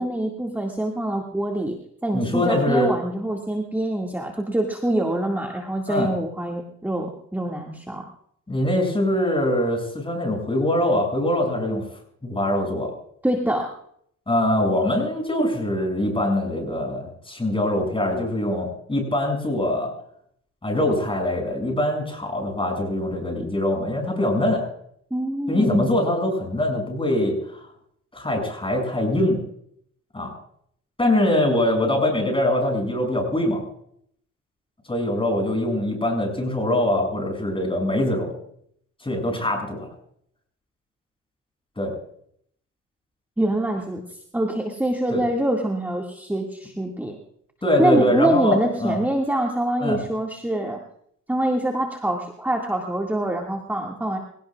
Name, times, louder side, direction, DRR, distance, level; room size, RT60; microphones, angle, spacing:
voice 1, 0.0-1.8 2.0-8.1 13.2-13.7 25.1-25.9 43.4-44.0 44.3-47.2 47.8-50.8 51.3-54.2, right 1 dB, 5° right, 0 dB, 2.1 m, -25 dB
voice 2, 2.1-2.9 5.9-6.1 8.5-11.8 12.2-12.9 14.3-19.9 20.6-24.7 25.5-27.6 28.1-29.4 30.1-30.3 31.0-33.6 34.9-38.3 39.0-39.9 41.8-42.0 45.1-45.2 47.6-49.0 49.8-50.0, left 1 dB, 15° left, 2 dB, 7.1 m, -23 dB
26.0 x 17.5 x 2.4 m, 0.68 s
cardioid pair, 90°, 30 cm